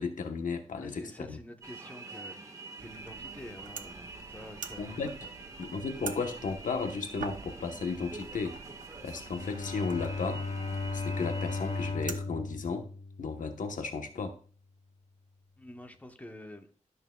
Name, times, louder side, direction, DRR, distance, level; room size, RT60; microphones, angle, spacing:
voice 1, 0.0-1.4 4.8-5.3 5.6-8.6 9.0-10.4 10.9-12.9 13.2-14.3, left 4 dB, 90° left, 6 dB, 1.1 m, -34 dB
voice 2, 0.8-2.5 2.8-4.9 15.6-16.7, left 1 dB, 10° left, 5 dB, 1.0 m, -47 dB
sound 1, 1.6-11.9, right 3 dB, 25° right, 1.5 m, -46 dB
sound 2, 2.8-12.2, right 6 dB, 85° right, 0.7 m, -46 dB
Bowed string instrument, 9.3-13.7, left 3 dB, 60° left, 0.7 m, -36 dB
13.0 x 6.7 x 2.3 m, 0.41 s
wide cardioid pair, 135°, 13 cm